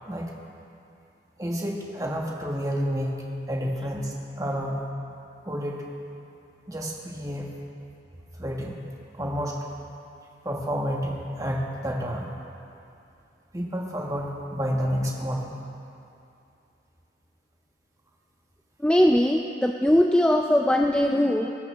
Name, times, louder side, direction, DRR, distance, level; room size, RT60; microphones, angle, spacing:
voice 1, 1.4-3.2 3.5-4.8 5.4-5.8 6.7-7.5 8.4-8.8 9.1-9.6 10.4-12.3 13.5-15.6, equal, 20° right, -1 dB, 1.6 m, -29 dB
voice 2, 18.8-21.6, left 1 dB, 5° left, 2 dB, 0.4 m, -21 dB
23.0 x 13.0 x 3.5 m, 2.6 s
head